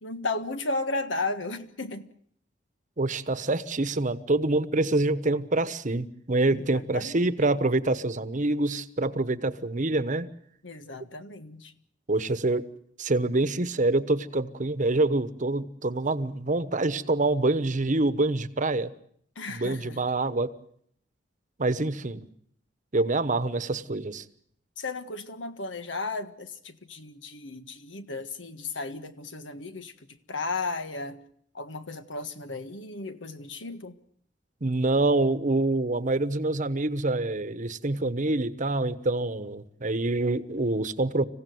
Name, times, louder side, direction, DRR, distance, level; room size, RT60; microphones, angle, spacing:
voice 1, 0.0-2.1 6.5-7.2 10.6-11.7 19.3-20.0 24.8-31.2 31.5-34.0, left 3 dB, 85° left, 10 dB, 1.6 m, -34 dB
voice 2, 3.0-10.3 12.1-12.7 13.0-18.9 19.5-20.5 21.6-22.3 22.9-24.2 34.6-41.2, right 2 dB, 45° right, 14 dB, 1.1 m, -26 dB
26.0 x 16.0 x 9.4 m, 0.66 s
head